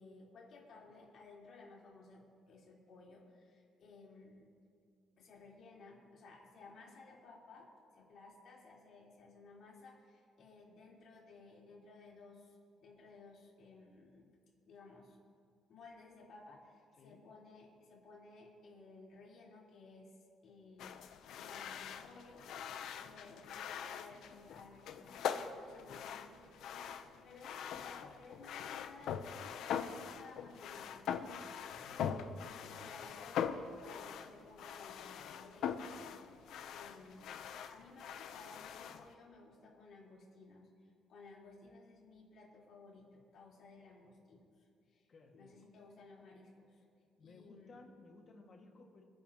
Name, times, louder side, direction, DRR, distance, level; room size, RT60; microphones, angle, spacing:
voice 1, 0.0-4.4 5.2-7.7 7.9-14.2 14.7-15.2 15.7-20.1 20.4-21.0 21.3-37.4 37.7-40.7 41.1-45.1 45.3-46.8 47.2-47.8, left 3 dB, 55° left, -4 dB, 4.0 m, -57 dB
sound 1, 20.8-39.1, left 8 dB, 70° left, 0.7 m, -43 dB
voice 2, 31.7-32.3 32.7-33.2 45.1-45.5 47.2-49.0, left 3 dB, 40° left, 1 dB, 2.0 m, -59 dB
29.5 x 11.0 x 3.0 m, 2.3 s
cardioid pair, 150°, 0 cm